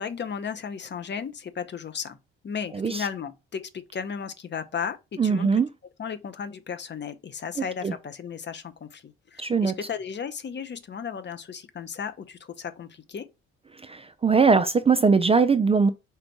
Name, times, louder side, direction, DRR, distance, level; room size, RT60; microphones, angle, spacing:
voice 1, 0.0-2.2 2.4-5.5 6.0-13.3, left 6 dB, 35° left, 0.7 m, -35 dB
voice 2, 2.7-3.1 5.2-5.7 7.6-7.9 9.4-9.7 13.8-15.9, right 5 dB, 20° right, 0.4 m, -21 dB
4.5 x 2.5 x 4.6 m
hypercardioid pair, 50°, 32 cm